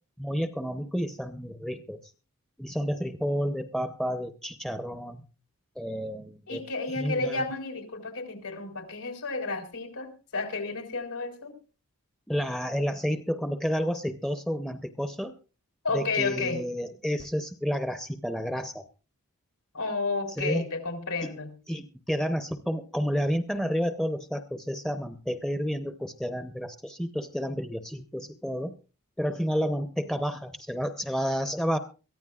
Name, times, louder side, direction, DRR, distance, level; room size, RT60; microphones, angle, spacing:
voice 1, 0.2-2.0 2.6-5.2 5.8-6.6 7.0-7.4 12.3-15.4 15.9-18.8 20.4-20.6 21.7-28.7 29.2-31.8, equal, ahead, 7 dB, 0.8 m, -30 dB
voice 2, 6.5-11.6 15.8-16.6 19.7-21.5, left 3 dB, 75° left, 4 dB, 4.2 m, -31 dB
23.0 x 15.0 x 2.4 m, 0.34 s
head